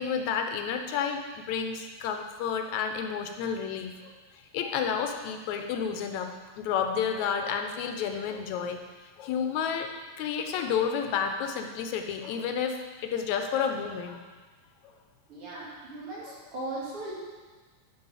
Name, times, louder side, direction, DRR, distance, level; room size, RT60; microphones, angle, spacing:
voice 1, 0.0-4.1 4.5-8.8 9.2-9.9 10.2-14.2 14.8-14.9 16.2-16.5, left 7 dB, 80° left, 5 dB, 2.0 m, -31 dB
voice 2, 15.3-17.1, right 2 dB, 50° right, -6 dB, 3.1 m, -38 dB
10.5 x 5.4 x 4.9 m, 1.4 s
omnidirectional pair, 3.4 m